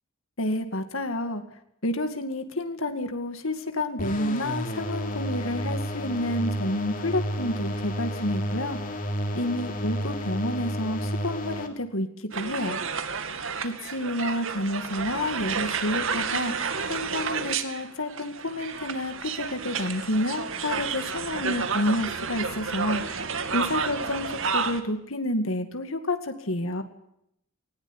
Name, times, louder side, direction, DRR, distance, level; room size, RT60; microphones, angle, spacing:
voice 1, 0.4-1.4 1.8-8.8 9.3-12.8 13.6-23.2 23.5-26.8, left 1 dB, 65° left, 8 dB, 2.3 m, -29 dB
sound 1, 4.0-11.7, equal, 40° left, 3.2 m, -31 dB
sound 2, 12.3-24.8, right 5 dB, 60° right, 2.4 m, -31 dB
19.5 x 19.0 x 9.8 m, 0.77 s
head